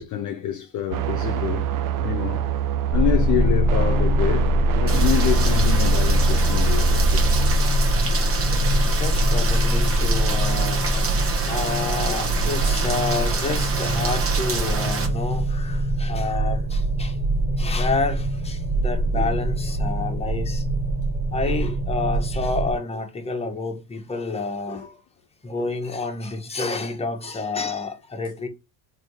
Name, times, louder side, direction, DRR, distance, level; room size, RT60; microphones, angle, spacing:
voice 1, 0.0-1.7 2.0-2.5 2.9-7.3 12.1-12.4 17.5-17.6 24.3-24.4 24.7-24.9 25.6-25.7, left 11 dB, 45° left, 0.6 m, -27 dB
sound 1, 0.9-7.6, right 11 dB, 50° right, 0.5 m, -26 dB
sound 2, 2.9-22.7, equal, 65° right, 1.5 m, -22 dB
Rain, 4.9-15.1, right 4 dB, 30° right, 1.0 m, -28 dB
voice 2, 7.4-17.2 17.6-20.6 21.3-25.0 25.4-28.5, left 3 dB, 15° left, 0.9 m, -29 dB
3.4 x 2.7 x 2.9 m
hypercardioid pair, 70°, 45 cm